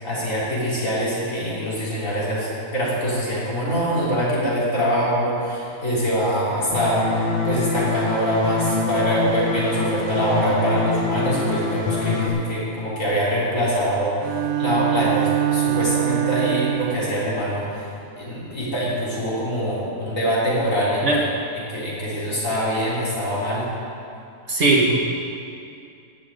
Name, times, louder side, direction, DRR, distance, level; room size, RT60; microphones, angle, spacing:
voice 1, 0.0-21.3 21.5-23.7, equal, 55° left, -8 dB, 4.0 m, -24 dB
sound 1, 6.7-12.3, left 3 dB, 40° left, 1.5 m, -24 dB
Bowed string instrument, 14.2-17.3, right 13 dB, 70° right, 0.9 m, -23 dB
voice 2, 24.5-24.9, right 2 dB, 50° right, -2 dB, 1.7 m, -18 dB
11.0 x 7.2 x 9.1 m, 2.5 s
omnidirectional pair, 1.7 m